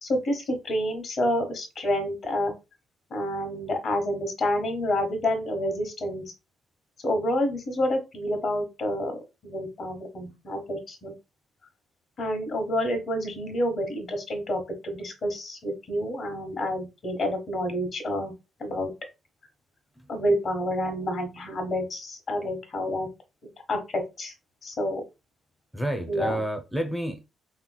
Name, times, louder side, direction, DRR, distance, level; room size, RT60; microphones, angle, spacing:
voice 1, 0.0-2.5 3.1-6.2 7.0-9.2 9.4-11.1 12.2-18.3 18.6-18.9 20.1-23.1 23.7-24.3 24.6-25.0 26.1-26.4, left 1 dB, 55° left, 1.2 m, -28 dB
voice 2, 25.7-27.2, right 1 dB, ahead, 0.6 m, -30 dB
3.5 x 3.0 x 2.3 m
cardioid pair, 90°, 0 cm